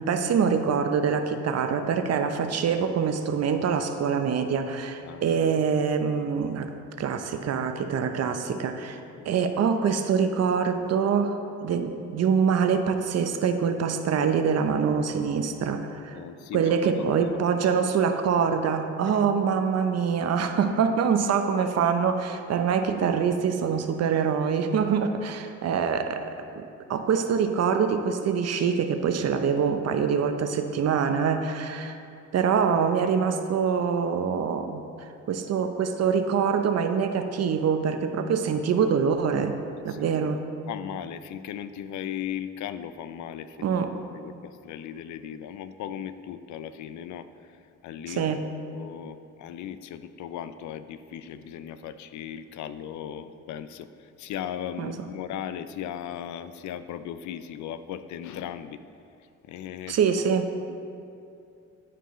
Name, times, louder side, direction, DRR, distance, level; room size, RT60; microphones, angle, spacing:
voice 1, 0.0-6.7 7.0-16.2 16.5-32.0 32.3-39.6 39.8-40.4 43.6-43.9 48.1-48.4 54.8-55.1 59.9-60.5, right 6 dB, 55° right, 7 dB, 0.7 m, -25 dB
voice 2, 16.1-17.1 17.6-17.7 19.1-19.2 39.9-40.4 40.7-43.7 44.1-48.3 48.6-58.8 59.5-60.0 60.7-60.8, left 9 dB, 75° left, 12 dB, 0.5 m, -37 dB
13.0 x 4.5 x 3.1 m, 2.6 s
cardioid pair, 90°, 30 cm